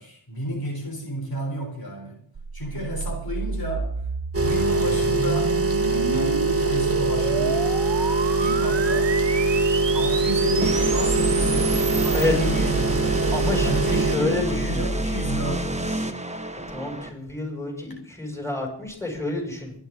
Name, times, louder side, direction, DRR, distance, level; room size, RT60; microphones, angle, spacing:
voice 1, 0.0-2.2 2.5-3.9 4.4-5.6 5.8-7.7 8.4-9.1 9.9-13.2 13.6-16.1, equal, 55° left, 1 dB, 3.8 m, -32 dB
sound 1, 2.3-12.3, right 5 dB, 75° right, 1.5 m, -31 dB
sound 2, 4.3-14.2, right 3 dB, 30° right, 1.5 m, -23 dB
sound 3, 10.6-17.1, right 1 dB, 15° right, 1.4 m, -27 dB
voice 2, 13.3-14.8 16.7-19.7, left 2 dB, 5° left, 1 dB, 6.3 m, -29 dB
27.5 x 10.5 x 3.9 m, 0.63 s
cardioid pair, 45°, 44 cm